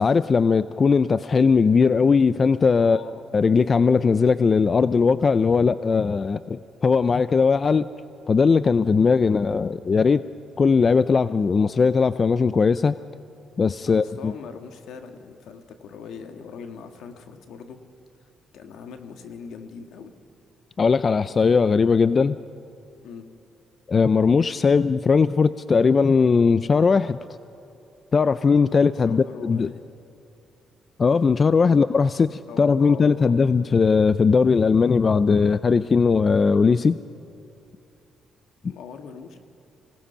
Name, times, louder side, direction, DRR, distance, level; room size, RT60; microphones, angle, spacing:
voice 1, 0.0-3.0 3.3-7.9 8.3-10.2 10.6-13.0 13.6-14.3 20.8-22.4 23.9-27.2 28.1-29.7 31.0-37.0, left 5 dB, 40° left, 14 dB, 0.4 m, -19 dB
voice 2, 2.8-3.2 13.8-17.8 18.5-20.1 23.0-23.3 29.1-29.8 31.6-31.8 32.5-33.4 38.6-39.4, left 6 dB, 80° left, 6 dB, 1.7 m, -41 dB
26.0 x 18.0 x 5.7 m, 2.8 s
cardioid pair, 90°, 0 cm